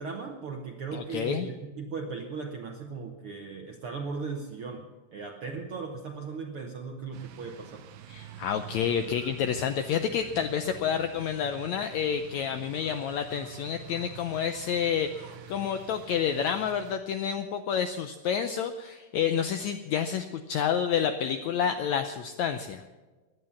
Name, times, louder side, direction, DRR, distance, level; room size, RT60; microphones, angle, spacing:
voice 1, 0.0-7.8, right 4 dB, 65° right, 3 dB, 1.4 m, -37 dB
voice 2, 0.9-1.5 8.1-22.8, left 8 dB, 80° left, 8 dB, 1.6 m, -29 dB
sound 1, 7.1-17.0, right 9 dB, 90° right, 2.8 m, -47 dB
16.0 x 11.0 x 7.0 m, 1.3 s
omnidirectional pair, 4.0 m